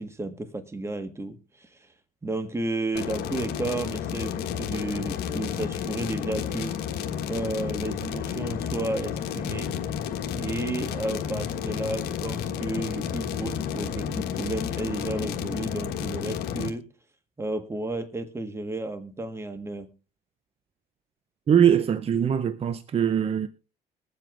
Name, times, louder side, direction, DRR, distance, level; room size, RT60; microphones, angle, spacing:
voice 1, 0.0-1.7 2.2-6.7 7.3-9.7 10.4-16.9 17.4-19.9, right 2 dB, 15° right, 1.5 m, -32 dB
sound 1, 2.9-16.7, left 8 dB, 80° left, 1.5 m, -31 dB
voice 2, 21.5-23.5, right 8 dB, 35° right, 0.6 m, -22 dB
22.5 x 7.7 x 2.5 m
cardioid pair, 110°, 17 cm